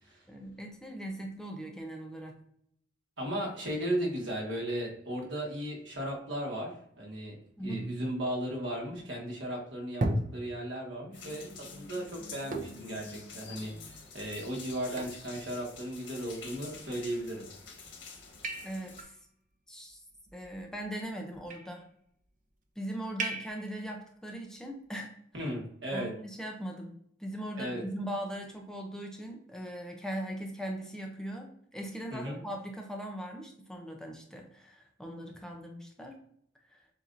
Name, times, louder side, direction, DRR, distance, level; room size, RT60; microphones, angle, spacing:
voice 1, 0.3-2.4 7.6-7.8 18.6-19.1 19.7-20.0 20.3-21.8 22.8-25.1 25.9-26.9 27.2-36.2 36.7-36.8, right 1 dB, 5° left, 1 dB, 0.5 m, -40 dB
voice 2, 3.2-10.1 10.3-17.4 25.3-26.1 27.5-27.8 32.1-32.4, right 1 dB, 75° right, -1 dB, 1.5 m, -36 dB
sound 1, 7.7-9.1 10.0-11.0 12.5-13.0 13.6-13.7 14.2-14.3 15.0-15.3 16.4-16.9 17.5-17.9 18.4-19.1 20.3-20.9 21.3-21.8 23.2-23.8, right 2 dB, 45° right, 0.6 m, -37 dB
sound 2, 11.1-19.0, left 4 dB, 85° left, 1.4 m, -48 dB
7.1 x 2.6 x 2.6 m, 0.70 s
head